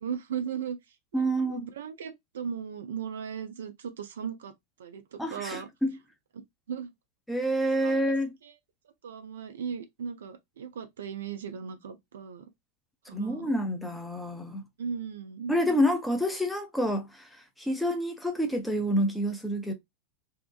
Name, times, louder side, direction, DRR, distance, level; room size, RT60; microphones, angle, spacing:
voice 1, 0.0-4.5 4.8-5.7 6.7-6.9 7.8-8.0 8.4-8.5 9.0-12.5 13.1-13.5 14.8-15.6, right 7 dB, 60° right, 0.4 m, -37 dB
voice 2, 1.1-1.7 5.2-5.9 7.3-8.3 13.1-14.6 15.5-17.3 17.6-19.7, equal, 5° left, 0.6 m, -28 dB
2.7 x 2.1 x 2.4 m
figure-of-eight pair, 90°, 0 cm